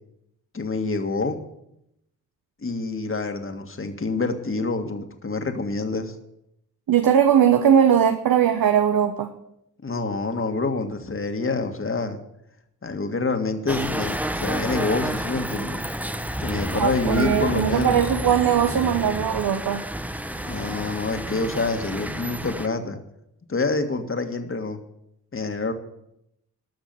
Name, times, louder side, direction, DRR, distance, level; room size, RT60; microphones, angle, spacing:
voice 1, 0.5-1.4 2.6-6.1 9.8-12.2 12.8-15.8 16.4-18.0 20.4-23.0 23.5-24.8 25.3-25.7, left 3 dB, 35° left, 6 dB, 1.9 m, -27 dB
voice 2, 6.9-9.3 16.7-19.8, right 8 dB, 70° right, 7 dB, 1.1 m, -19 dB
sound 1, 13.7-22.7, right 1 dB, 5° right, 0.9 m, -30 dB
13.0 x 6.1 x 9.6 m, 0.81 s
cardioid pair, 55°, 37 cm